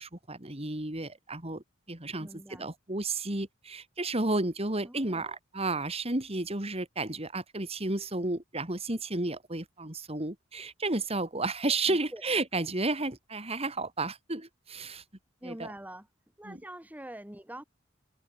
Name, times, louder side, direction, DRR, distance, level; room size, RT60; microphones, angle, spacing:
voice 1, 0.0-15.0 15.4-15.7 16.4-16.6, right 2 dB, 30° right, 3.1 m, -32 dB
voice 2, 2.2-2.7 4.8-5.4 11.9-12.2 15.4-16.1 16.4-17.6, right 1 dB, 10° right, 2.0 m, -45 dB
head